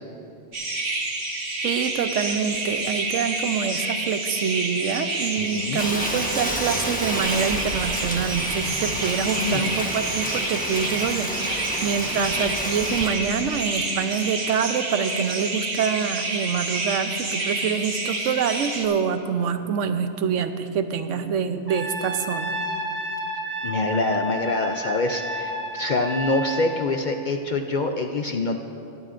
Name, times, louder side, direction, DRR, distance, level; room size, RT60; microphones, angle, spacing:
sound 1, 0.5-18.9, right 2 dB, 60° right, 1.6 m, -28 dB
voice 1, 1.6-22.5, right 7 dB, 85° right, 9 dB, 1.0 m, -26 dB
voice 2, 5.4-5.8 9.4-9.7 23.6-28.6, left 3 dB, 55° left, 5 dB, 0.5 m, -25 dB
Rain, 5.8-13.1, equal, 5° left, 1.0 m, -30 dB
Trumpet, 21.7-26.7, right 1 dB, 30° right, 1.7 m, -31 dB
21.0 x 11.0 x 2.5 m, 2.7 s
omnidirectional pair, 1.3 m